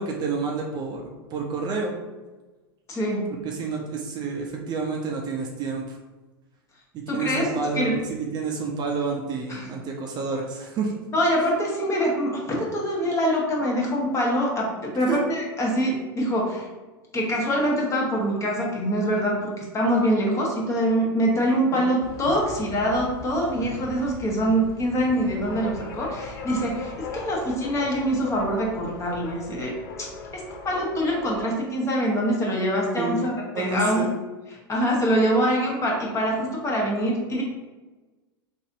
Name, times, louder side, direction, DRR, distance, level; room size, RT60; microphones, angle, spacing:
voice 1, 0.0-1.9 3.4-6.0 6.9-10.9 15.1-15.2 21.7-21.9 32.9-33.2 33.5-34.1, right 4 dB, 35° right, 0 dB, 0.6 m, -29 dB
voice 2, 2.9-3.3 7.1-8.0 9.5-9.7 11.1-16.7 17.1-34.1 34.7-37.4, equal, 25° left, -2 dB, 1.0 m, -24 dB
sound 1, 22.0-31.4, left 4 dB, 65° left, 0.5 m, -39 dB
3.9 x 2.6 x 2.6 m, 1.2 s
hypercardioid pair, 90°, 13 cm